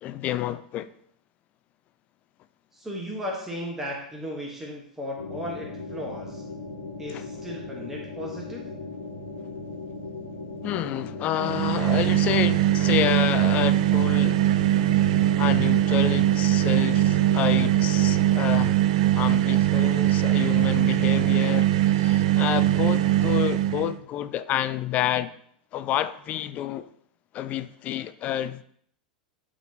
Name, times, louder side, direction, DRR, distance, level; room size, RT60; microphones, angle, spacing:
voice 1, 0.0-0.9 7.1-7.2 10.6-14.4 15.4-18.8 19.1-25.3 25.7-26.9 27.3-28.6, left 12 dB, 35° left, 0.4 m, -29 dB
voice 2, 2.7-6.4 7.0-8.7, left 1 dB, 10° right, 1.1 m, -35 dB
sound 1, 5.2-18.4, left 3 dB, 75° left, 1.3 m, -38 dB
sound 2, 11.4-24.0, right 14 dB, 55° right, 0.4 m, -21 dB
11.5 x 3.8 x 2.8 m
figure-of-eight pair, 90°, 4 cm